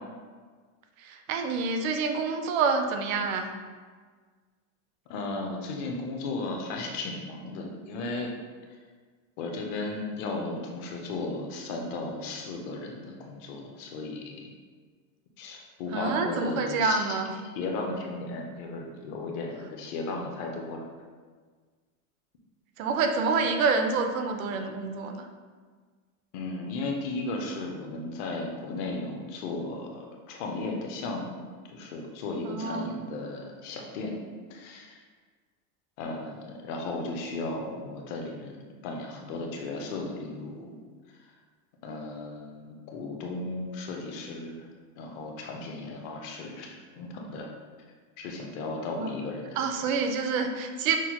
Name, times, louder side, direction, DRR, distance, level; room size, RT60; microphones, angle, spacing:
voice 1, 1.0-3.5 15.9-17.3 22.8-25.3 32.4-32.9 49.0-49.1 49.6-51.0, right 4 dB, 75° right, 6 dB, 0.6 m, -27 dB
voice 2, 5.1-8.3 9.4-14.5 15.4-17.1 17.6-20.8 26.3-31.3 31.7-34.2 34.5-35.0 36.0-38.6 38.8-40.8 41.8-44.7 45.0-47.5 48.2-49.9, left 2 dB, 40° left, 1 dB, 0.5 m, -35 dB
5.9 x 2.1 x 2.8 m, 1.5 s
supercardioid pair, 160°, 41 cm